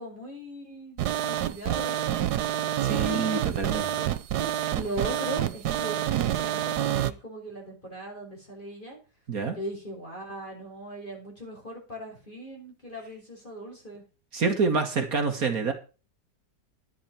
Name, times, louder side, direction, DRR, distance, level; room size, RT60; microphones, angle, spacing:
voice 1, 0.0-2.3 3.1-3.3 4.3-4.5 4.7-9.0 9.5-14.0, right 1 dB, 30° left, 0 dB, 5.9 m, -39 dB
sound 1, 1.0-7.1, right 11 dB, 75° right, 1.3 m, -27 dB
voice 2, 2.8-4.1 9.3-9.6 14.3-15.7, right 4 dB, 60° right, 6 dB, 2.0 m, -27 dB
11.5 x 11.0 x 4.3 m, 0.34 s
omnidirectional pair, 1.8 m